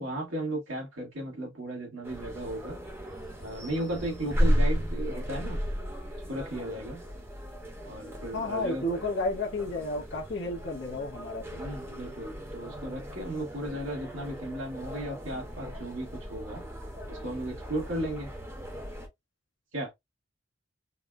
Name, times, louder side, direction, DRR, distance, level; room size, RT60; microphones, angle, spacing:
voice 1, 0.0-2.8 3.4-5.6 6.3-7.0 7.8-8.9 11.6-16.6 17.1-18.3 19.7-19.9, right 1 dB, 85° right, 1.5 m, -35 dB
sound 1, 2.0-19.1, equal, 15° right, 0.9 m, -35 dB
voice 2, 8.3-11.6, left 2 dB, 65° left, 0.9 m, -32 dB
4.1 x 2.1 x 2.3 m
head